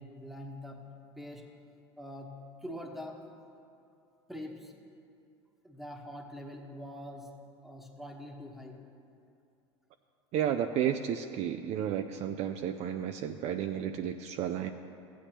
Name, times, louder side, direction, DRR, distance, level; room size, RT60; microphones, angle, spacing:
voice 1, 0.0-1.6 2.0-3.3 4.3-4.8 5.6-8.8, left 1 dB, ahead, 2 dB, 1.1 m, -44 dB
voice 2, 10.3-14.7, right 9 dB, 45° right, 7 dB, 0.4 m, -32 dB
14.5 x 8.3 x 2.9 m, 2.5 s
hypercardioid pair, 90°, 15 cm